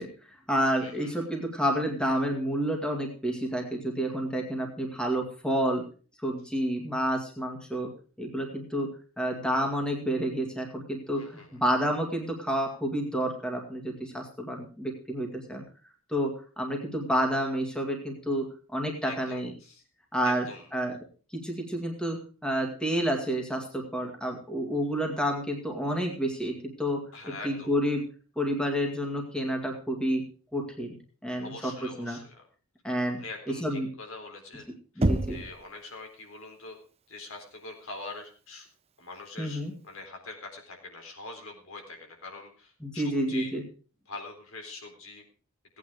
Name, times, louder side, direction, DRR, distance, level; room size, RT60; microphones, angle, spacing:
voice 1, 0.0-5.8 6.2-7.9 8.2-15.6 16.1-19.5 20.1-20.5 20.7-21.0 21.3-28.1 28.4-31.0 31.2-32.2 32.8-33.2 33.6-33.9 35.0-35.4 39.4-39.7 42.8-43.6, equal, 5° left, 2 dB, 2.2 m, -30 dB
voice 2, 0.8-1.3 11.1-11.6 19.0-19.8 20.2-20.7 27.1-27.7 31.4-32.4 33.2-34.6 34.9-36.8 37.1-38.7 39.0-43.5 44.1-45.2, left 3 dB, 70° left, 3 dB, 4.0 m, -44 dB
Knock, 35.0-35.7, right 1 dB, 30° right, 0.8 m, -26 dB
17.5 x 9.2 x 4.9 m, 0.38 s
head